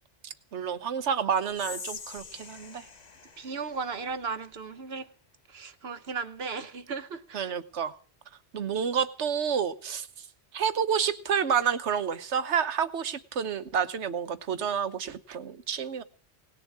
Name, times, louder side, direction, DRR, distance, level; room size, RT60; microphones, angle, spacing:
voice 1, 0.2-2.8 7.3-8.0 8.5-10.1 10.5-16.0, right 7 dB, 90° right, 1.3 m, -29 dB
Whispering, 1.5-4.7, left 4 dB, 40° left, 1.1 m, -44 dB
voice 2, 3.4-5.1 5.5-7.5, right 5 dB, 65° right, 1.2 m, -36 dB
19.0 x 7.2 x 8.6 m
omnidirectional pair, 1.1 m